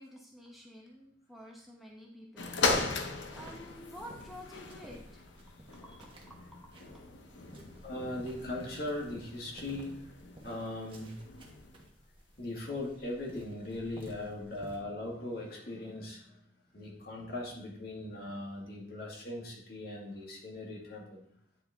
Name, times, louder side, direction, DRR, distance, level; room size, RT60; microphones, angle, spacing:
voice 1, 0.0-5.0 5.5-5.6 5.8-7.0 7.5-7.8, equal, ahead, -3 dB, 0.9 m, -51 dB
sound 1, 2.4-11.9 12.6-12.7, left 3 dB, 85° left, 0.8 m, -38 dB
sound 2, 2.9-14.8, right 1 dB, 30° right, 1.2 m, -55 dB
voice 2, 7.8-9.9 10.4-11.2 12.4-16.4 16.7-21.3, left 1 dB, 55° left, -2 dB, 1.8 m, -39 dB
9.5 x 4.0 x 3.5 m, 0.67 s
head